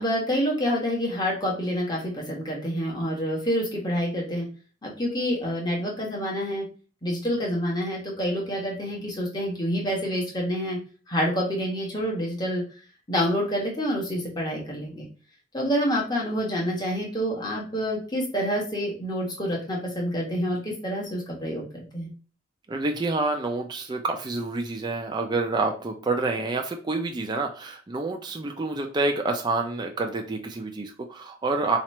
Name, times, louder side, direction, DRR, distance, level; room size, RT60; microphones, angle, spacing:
voice 1, 0.0-4.5 4.8-6.7 7.0-10.8 11.1-12.6 13.1-15.1 15.5-22.1, equal, 20° left, -3 dB, 1.1 m, -27 dB
voice 2, 22.7-31.8, right 3 dB, 20° right, 2 dB, 0.4 m, -28 dB
2.9 x 2.5 x 4.2 m, 0.38 s
head